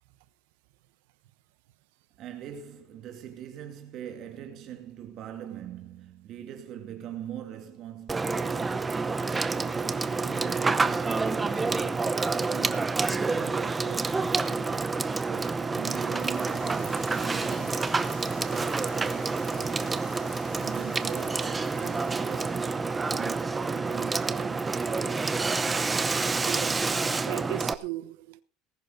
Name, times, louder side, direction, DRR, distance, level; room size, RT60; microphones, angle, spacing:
voice 1, 2.2-9.1 9.5-12.1 12.5-17.9 18.3-20.1 20.5-22.8 23.1-24.8, right 10 dB, 45° right, 2.2 m, -42 dB
Water / Water tap faucet / Sink (filling or washing), 8.1-27.7, right 4 dB, 15° right, 0.8 m, -28 dB
sound 1, 15.7-22.9, left 5 dB, 45° left, 5.5 m, -51 dB
voice 2, 26.0-28.4, right 18 dB, 85° right, 1.1 m, -38 dB
19.5 x 11.0 x 4.0 m
cardioid pair, 160°, 0 cm